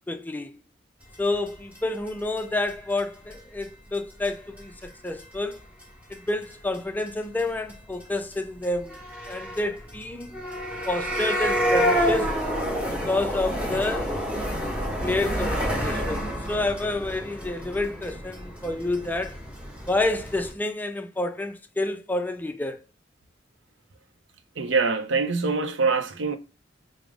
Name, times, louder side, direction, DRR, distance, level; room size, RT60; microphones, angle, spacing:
voice 1, 0.1-0.5 1.2-5.6 6.1-9.0 9.3-10.4 10.9-12.3 12.9-14.1 15.0-19.4 19.9-22.8, left 2 dB, 10° left, 0.4 m, -29 dB
sound 1, 1.5-1.6 1.8-1.9 2.1-2.2 2.4-2.5 2.7-2.8 3.0-3.1 3.3-3.6 3.9-4.0 4.2-4.3 4.6-4.8 5.2-5.3 5.5-6.2 6.4-6.8 7.1-7.2 7.4-7.5 7.7-7.8 8.0-8.1 8.3-8.4 8.6-20.5, equal, 5° right, 0.9 m, -29 dB
voice 2, 24.6-26.4, right 4 dB, 80° right, 0.5 m, -24 dB
4.8 x 2.0 x 3.5 m
head